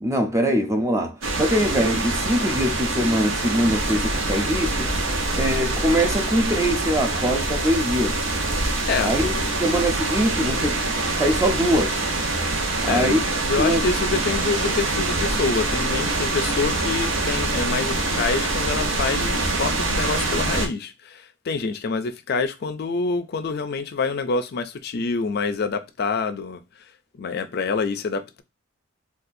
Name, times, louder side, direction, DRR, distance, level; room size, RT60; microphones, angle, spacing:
voice 1, 0.0-4.9 5.3-8.2 9.0-9.3 9.6-10.7 11.2-12.1 12.8-13.2 13.6-13.8, equal, 15° right, 0.5 m, -22 dB
sound 1, 1.2-20.7, right 2 dB, 70° right, 0.9 m, -25 dB
voice 2, 8.9-9.5 12.9-13.2 13.5-26.6 27.2-28.4, left 4 dB, 50° left, 0.4 m, -26 dB
4.1 x 2.4 x 2.6 m
head